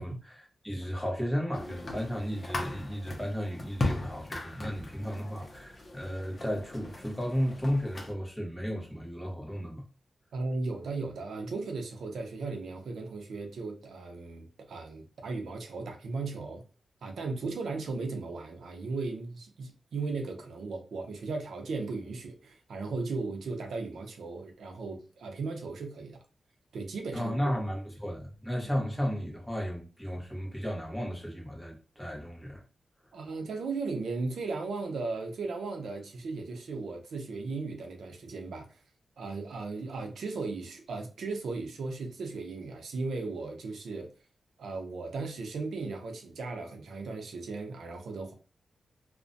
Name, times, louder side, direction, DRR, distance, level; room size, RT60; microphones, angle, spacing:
voice 1, 0.0-9.8 27.1-32.6, equal, 5° left, 0.8 m, -34 dB
sound 1, 1.5-8.1, left 2 dB, 35° left, 0.6 m, -38 dB
voice 2, 10.3-16.6 17.0-26.2 26.7-27.3 33.1-38.8 39.2-44.1 44.6-48.3, right 3 dB, 85° right, 0.5 m, -36 dB
2.5 x 2.1 x 2.5 m
wide cardioid pair, 115°, 0 cm